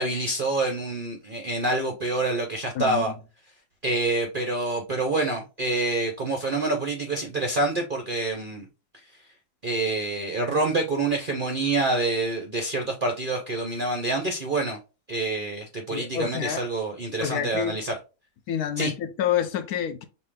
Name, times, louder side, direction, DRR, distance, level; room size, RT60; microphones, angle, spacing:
voice 1, 0.0-3.1 3.8-8.7 9.6-14.8 15.1-17.9 18.8-18.9, right 2 dB, 55° right, 0.5 m, -27 dB
voice 2, 15.9-16.6 17.2-17.8 18.5-20.1, left 9 dB, 70° left, 1.0 m, -28 dB
5.3 x 2.6 x 3.2 m
omnidirectional pair, 1.8 m